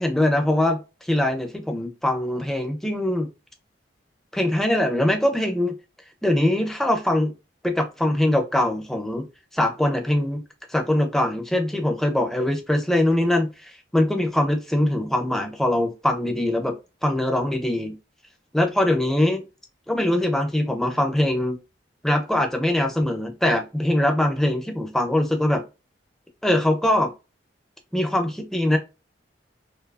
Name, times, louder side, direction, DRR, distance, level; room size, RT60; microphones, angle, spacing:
voice 1, 0.0-3.3 4.3-5.7 6.2-7.3 7.6-9.2 9.5-10.4 10.7-16.7 17.0-18.0 18.5-19.4 19.9-21.6 22.0-25.6 26.4-27.1 27.9-28.8, left 1 dB, ahead, 0.4 m, -22 dB
2.7 x 2.3 x 2.3 m
head